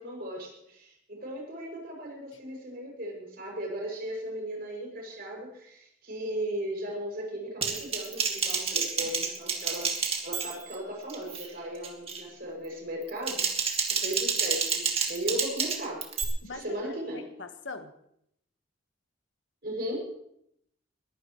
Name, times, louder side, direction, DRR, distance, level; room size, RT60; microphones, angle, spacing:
voice 1, 0.0-9.9 10.2-16.0 16.4-17.3 19.6-20.1, right 1 dB, 50° right, 6.8 m, -37 dB
Typing, 7.6-10.8 11.1-11.5 11.8-12.2 13.0-16.2, right 5 dB, 30° right, 2.1 m, -29 dB
voice 2, 16.4-17.9, left 3 dB, 70° left, 1.4 m, -42 dB
22.0 x 16.0 x 3.2 m
head